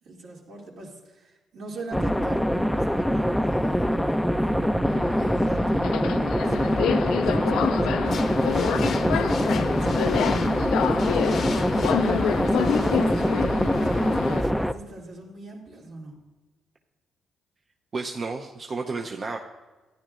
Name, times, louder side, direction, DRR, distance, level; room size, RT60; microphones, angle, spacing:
voice 1, 0.0-16.2, right 2 dB, 75° right, -3 dB, 2.5 m, -41 dB
sound 1, 1.9-14.7, equal, 5° left, 0.4 m, -24 dB
Subway metro underground, 4.8-14.4, left 9 dB, 85° left, 0.4 m, -28 dB
sound 2, 8.0-14.5, left 5 dB, 55° left, 0.7 m, -38 dB
voice 2, 17.9-19.4, right 4 dB, 40° right, 1 dB, 0.6 m, -31 dB
13.5 x 10.0 x 2.5 m, 1.2 s
cardioid pair, 90°, 0 cm